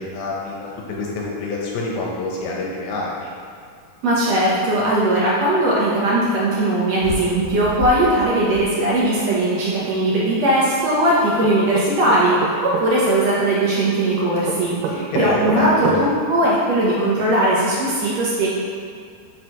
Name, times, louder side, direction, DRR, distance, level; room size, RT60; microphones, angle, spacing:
voice 1, 0.0-3.3 14.9-16.0, left 3 dB, 75° left, -3 dB, 2.8 m, -27 dB
voice 2, 4.0-18.5, right 1 dB, 70° right, -7 dB, 1.6 m, -19 dB
sound 1, 7.0-9.4, left 2 dB, 60° left, 3.3 m, -32 dB
sound 2, 11.4-12.9 14.4-16.0, right 8 dB, 90° right, 1.9 m, -26 dB
6.1 x 4.9 x 5.9 m, 2.2 s
omnidirectional pair, 4.5 m